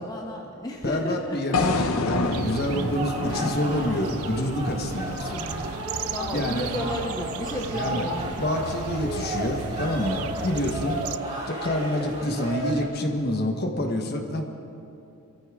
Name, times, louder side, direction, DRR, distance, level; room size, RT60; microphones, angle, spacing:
voice 1, 0.0-2.1 5.9-8.4, left 1 dB, 15° left, 0 dB, 0.8 m, -33 dB
voice 2, 0.8-1.7 2.0-5.7 6.3-6.7 7.7-8.1 8.4-11.0 11.5-14.4, left 1 dB, 45° left, 3 dB, 1.4 m, -27 dB
sound 1, 1.5-5.7, left 3 dB, 80° left, 0.9 m, -29 dB
sound 2, 2.3-11.2, right 8 dB, 85° right, 0.4 m, -37 dB
sound 3, 2.5-12.8, equal, 30° right, 3.0 m, -33 dB
23.0 x 14.5 x 3.7 m, 2.8 s
head